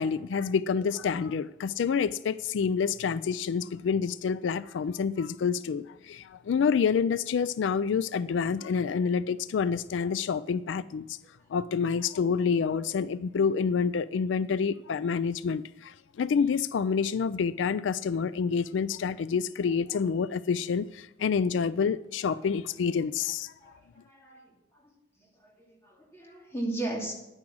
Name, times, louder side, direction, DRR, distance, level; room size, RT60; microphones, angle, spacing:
voice 1, 0.0-11.2 11.5-23.5, left 6 dB, 85° left, 0.4 m, -28 dB
voice 2, 23.6-24.9 25.2-27.1, right 2 dB, 15° left, 2.6 m, -37 dB
9.8 x 9.8 x 6.3 m
head